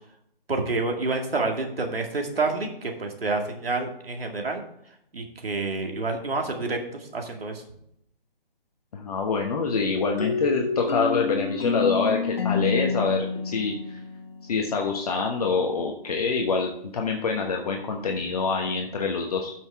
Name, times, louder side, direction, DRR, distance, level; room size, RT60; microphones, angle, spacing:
voice 1, 0.5-4.6 5.1-7.6, right 3 dB, 80° right, 3 dB, 2.3 m, -28 dB
voice 2, 8.9-14.0 14.5-19.5, left 4 dB, 40° left, 1 dB, 1.2 m, -26 dB
sound 1, 10.2-14.9, left 5 dB, 75° left, 1.4 m, -28 dB
13.0 x 6.0 x 3.6 m, 0.74 s
figure-of-eight pair, 150°, 29 cm